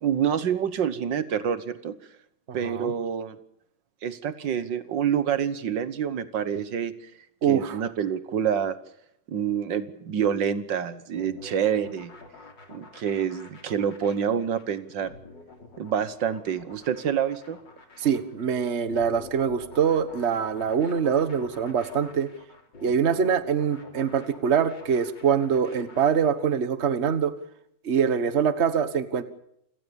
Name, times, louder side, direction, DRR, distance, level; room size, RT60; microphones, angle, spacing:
voice 1, 0.0-2.0 2.5-3.4 4.0-7.1 7.5-8.8 9.3-12.1 12.7-15.1 15.8-17.6, right 8 dB, 80° right, 13 dB, 1.9 m, -27 dB
voice 2, 2.5-2.9 7.4-7.8 18.0-22.3 22.8-27.3 27.8-29.2, right 7 dB, 40° right, 12 dB, 1.5 m, -24 dB
sound 1, 11.1-26.6, left 3 dB, 75° left, 4.2 m, -48 dB
28.0 x 18.0 x 7.1 m, 0.76 s
omnidirectional pair, 2.0 m